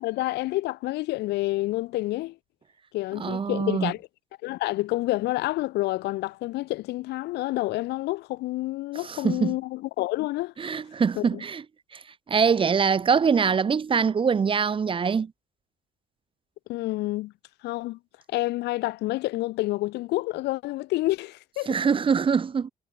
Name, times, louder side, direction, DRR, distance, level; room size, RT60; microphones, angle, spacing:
voice 1, 0.0-2.4 2.9-4.0 4.4-10.5 11.2-11.4 16.7-17.3 17.6-18.0 18.3-21.8, left 18 dB, 85° left, 3.0 m, -28 dB
voice 2, 3.2-3.9 9.0-9.5 10.6-11.6 11.9-12.0 12.3-15.3 21.7-22.7, right 6 dB, 30° right, 1.2 m, -23 dB
cardioid pair, 110°, 17 cm